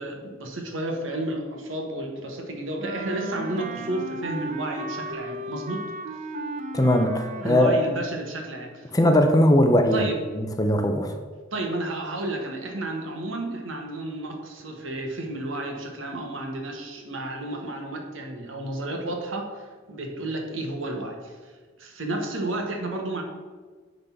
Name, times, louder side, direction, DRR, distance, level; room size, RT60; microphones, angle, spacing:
voice 1, 0.0-5.8 7.4-8.9 9.9-10.2 11.5-21.3 21.8-23.2, right 2 dB, 90° right, 2 dB, 1.6 m, -32 dB
Wind instrument woodwind instrument, 2.8-8.0, right 1 dB, 40° right, 0.8 m, -35 dB
voice 2, 6.7-7.8 8.9-10.0 10.3-11.2, left 1 dB, 20° left, 5 dB, 0.7 m, -20 dB
9.7 x 4.0 x 5.9 m, 1.4 s
head